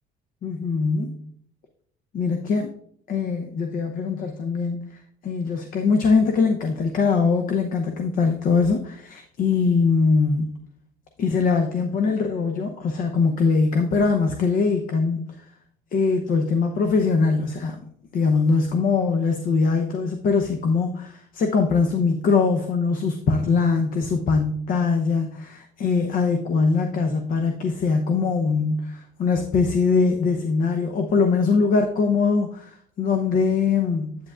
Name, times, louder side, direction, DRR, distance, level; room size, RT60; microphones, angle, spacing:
voice 1, 0.4-1.3 2.1-2.7 3.1-10.5 11.2-15.4 15.9-17.9 18.1-34.2, left 4 dB, 55° left, 5 dB, 0.8 m, -22 dB
8.6 x 7.7 x 2.4 m, 0.65 s
cardioid pair, 110°, 17 cm